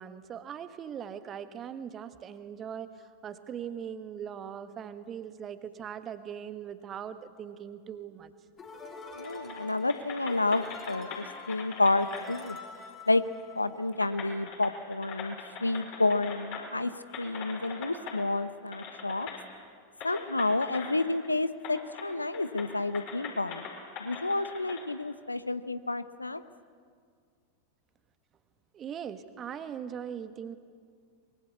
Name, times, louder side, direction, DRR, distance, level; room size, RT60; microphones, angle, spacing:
voice 1, 0.0-8.3 28.7-30.6, right 8 dB, 25° right, 11 dB, 1.5 m, -40 dB
sound 1, 8.6-14.1, left 4 dB, 25° left, 3.2 m, -47 dB
voice 2, 9.1-12.6 13.1-13.2 13.5-15.4 15.6-16.9 17.2-19.3 20.0-23.6 24.0-26.4, left 2 dB, 80° left, 14 dB, 0.9 m, -30 dB
sound 2, 9.2-9.6 9.9-12.3 13.4-13.5 13.9-16.8 17.1-18.2 18.7-19.4 20.0-21.3 21.6-22.1 22.3-24.8, left 6 dB, 45° left, 5.4 m, -42 dB
24.0 x 22.5 x 8.4 m, 2.1 s
figure-of-eight pair, 90°, 0 cm